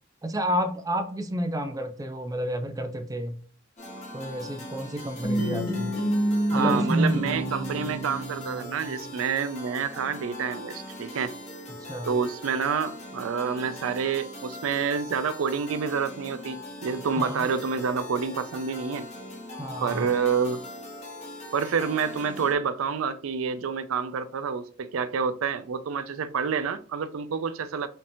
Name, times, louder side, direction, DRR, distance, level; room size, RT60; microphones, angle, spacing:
voice 1, 0.2-3.4 4.1-6.0 6.5-7.2 11.8-12.1 17.2-17.5 19.6-20.1, right 1 dB, 20° right, 0.5 m, -29 dB
sound 1, 3.8-22.5, left 1 dB, 35° left, 1.1 m, -41 dB
sound 2, 5.2-9.2, equal, 80° left, 1.3 m, -28 dB
voice 2, 6.5-11.3 12.1-19.1 19.8-20.6 21.5-27.9, right 6 dB, 80° right, 0.4 m, -28 dB
5.2 x 2.8 x 2.6 m
head